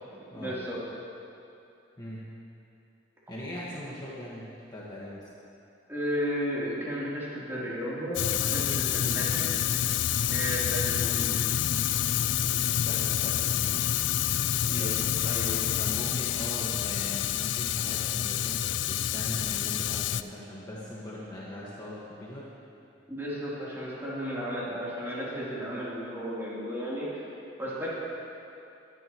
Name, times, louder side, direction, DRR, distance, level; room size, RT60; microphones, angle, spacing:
voice 1, 0.0-0.8 5.9-9.7 10.3-11.4 14.7-14.9 15.2-15.5 23.1-27.3 27.6-27.9, equal, 15° right, -9 dB, 3.4 m, -34 dB
voice 2, 3.3-5.3 12.5-14.0 15.7-22.5, left 1 dB, 20° left, -7 dB, 1.6 m, -40 dB
Fire, 8.1-20.2, left 10 dB, 80° left, 0.4 m, -28 dB
21.0 x 10.5 x 3.1 m, 2.7 s
head